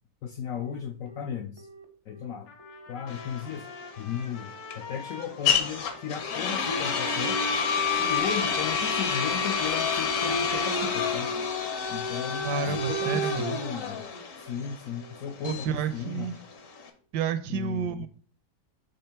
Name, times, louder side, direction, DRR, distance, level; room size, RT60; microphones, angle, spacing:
voice 1, 0.2-1.7 2.1-2.5 2.9-3.7 4.0-4.5 4.8-7.4 8.0-11.3 11.9-14.0 14.4-16.3 17.5-18.1, left 8 dB, 70° left, 0.8 m, -35 dB
Telephone, 0.5-16.7, right 2 dB, 35° right, 0.4 m, -50 dB
Trumpet, 2.5-10.9, left 5 dB, 90° left, 1.7 m, -45 dB
sound 1, 3.1-16.9, left 5 dB, 55° left, 1.2 m, -28 dB
voice 2, 12.4-13.6 15.4-16.4 17.1-18.1, right 6 dB, 75° right, 1.2 m, -30 dB
5.4 x 3.6 x 5.7 m
omnidirectional pair, 1.9 m